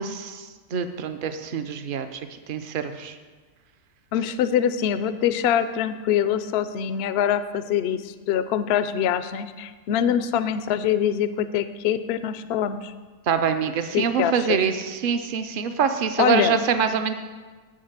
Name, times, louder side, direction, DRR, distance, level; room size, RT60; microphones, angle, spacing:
voice 1, 0.0-2.2 2.5-3.2 13.3-17.1, right 7 dB, 60° right, 8 dB, 0.5 m, -25 dB
voice 2, 4.1-12.9 13.9-14.6 16.2-16.6, left 9 dB, 70° left, 12 dB, 0.6 m, -24 dB
7.5 x 6.4 x 8.0 m, 1.4 s
omnidirectional pair, 1.6 m